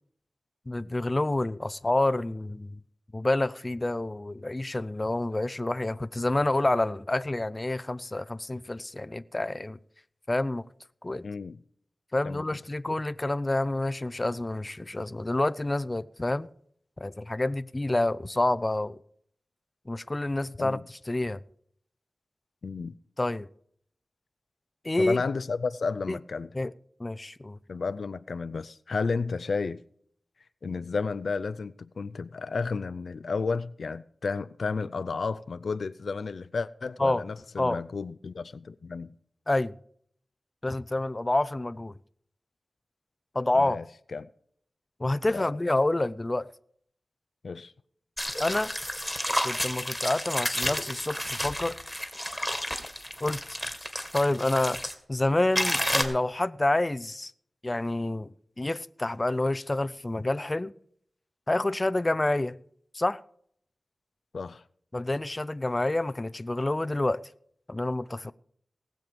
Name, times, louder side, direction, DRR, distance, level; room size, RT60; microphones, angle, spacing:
voice 1, 0.7-2.8 3.1-9.8 10.3-10.6 11.0-11.2 12.1-16.5 17.0-19.0 19.9-21.4 23.2-23.5 24.8-25.2 26.1-26.2 26.5-26.7 27.0-27.6 37.0-37.2 37.6-37.8 39.5-39.7 40.6-41.9 43.3-43.8 45.0-46.5 48.4-48.7 49.4-51.8 53.2-53.6 54.1-54.8 55.1-57.3 57.6-58.3 58.6-60.7 61.5-62.6 62.9-63.2 64.9-67.2 67.7-68.3, left 2 dB, 30° left, 0.6 m, -28 dB
voice 2, 11.2-11.6 12.2-12.6 12.9-13.0 20.6-20.8 22.6-22.9 25.0-26.5 27.7-29.8 30.6-39.1 43.5-43.8 44.1-44.3 45.3-45.5 47.4-47.7 64.3-64.6, left 4 dB, 80° left, 0.5 m, -32 dB
sound 1, 48.2-54.9 55.6-56.0, equal, ahead, 2.1 m, -31 dB
19.0 x 7.7 x 5.2 m
wide cardioid pair, 60°, 0 cm